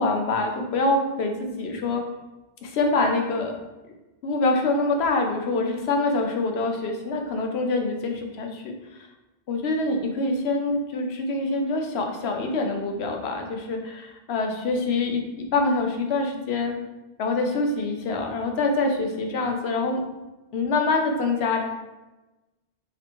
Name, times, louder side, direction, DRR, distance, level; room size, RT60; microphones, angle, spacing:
voice 1, 0.0-2.0 2.6-3.6 4.2-9.1 9.5-16.8 17.2-20.0 20.5-21.6, left 3 dB, 80° left, 3 dB, 0.9 m, -25 dB
3.1 x 3.0 x 4.2 m, 1.1 s
omnidirectional pair, 1.1 m